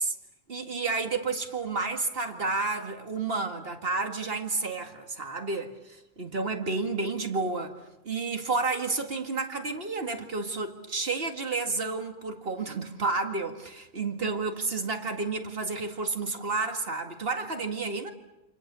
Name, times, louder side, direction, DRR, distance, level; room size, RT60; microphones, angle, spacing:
voice 1, 0.5-7.8 8.0-18.1, right 3 dB, 60° right, 2.4 m, -31 dB
28.5 x 27.5 x 7.0 m
omnidirectional pair, 1.1 m